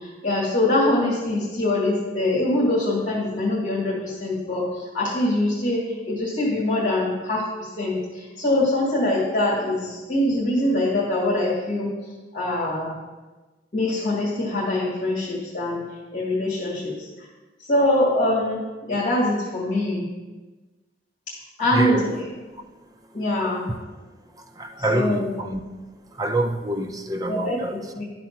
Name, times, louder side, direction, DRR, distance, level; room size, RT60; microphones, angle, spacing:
voice 1, 0.0-4.7 4.9-11.9 12.3-13.0 13.7-15.8 16.1-17.1 17.6-20.0 21.3-22.1 23.1-23.6 24.9-25.3 27.3-27.6 27.9-28.0, left 1 dB, 45° left, 2.0 m, -23 dB
voice 2, 21.7-22.1 24.4-25.6 26.1-27.9, right 1 dB, 20° right, 0.6 m, -26 dB
11.5 x 4.1 x 5.8 m
head